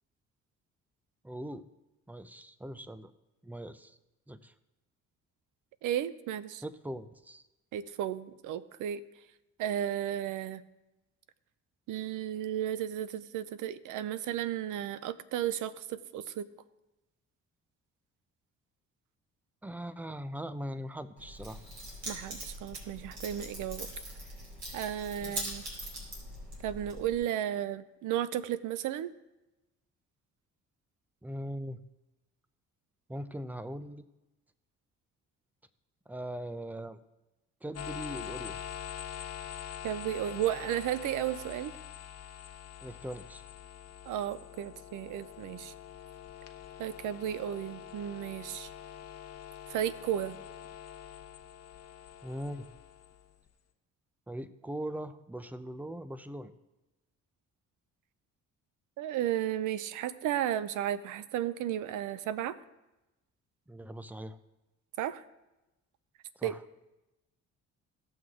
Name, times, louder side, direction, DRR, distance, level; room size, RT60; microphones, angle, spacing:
voice 1, 1.2-1.6 2.1-3.1 3.4-4.0 4.3-4.5 6.6-7.4 19.6-21.6 25.2-25.4 31.2-31.8 33.1-34.0 36.1-37.0 37.6-38.6 42.8-43.4 52.2-52.7 54.3-56.5 63.7-64.4 66.4-66.6, right 1 dB, 5° right, 12 dB, 0.6 m, -40 dB
voice 2, 5.8-6.6 7.7-9.0 9.6-10.6 11.9-16.5 22.1-23.9 24.7-25.6 26.6-29.1 39.8-41.7 44.1-45.7 46.8-48.7 49.7-50.4 59.0-62.6 65.0-65.2 66.4-66.5, right 11 dB, 85° right, 15 dB, 0.6 m, -34 dB
Keys jangling, 21.2-27.2, right 1 dB, 65° right, 4.2 m, -42 dB
sound 1, 37.7-53.5, left 10 dB, 55° left, 1.1 m, -45 dB
17.0 x 6.3 x 3.7 m, 0.99 s
cardioid pair, 90°, 30 cm